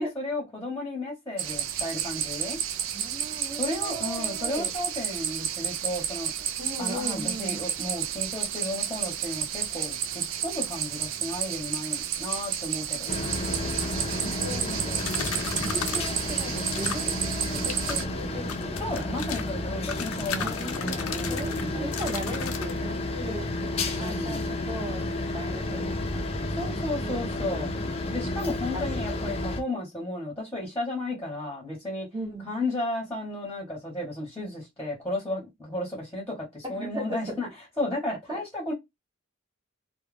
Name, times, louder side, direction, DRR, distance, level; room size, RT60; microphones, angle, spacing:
voice 1, 0.0-2.6 3.6-6.3 6.8-13.2 18.8-22.0 24.0-24.5 26.6-27.7 28.1-32.1 32.4-37.5 37.8-38.7, left 1 dB, 10° left, 0.9 m, -33 dB
sound 1, 1.4-18.0, right 9 dB, 65° right, 0.4 m, -31 dB
voice 2, 2.9-4.7 6.6-7.6 13.7-19.1 20.4-25.1 25.3-26.3 27.0-27.5 28.7-29.3 32.1-32.5 36.7-37.4 38.3-38.4, right 1 dB, 20° right, 0.9 m, -38 dB
sound 2, 13.1-29.6, left 2 dB, 30° left, 0.4 m, -31 dB
sound 3, 15.0-16.1 16.7-17.1 17.5-18.0 18.5-19.5 19.9-22.7, left 7 dB, 85° left, 0.5 m, -35 dB
2.3 x 2.1 x 3.2 m
head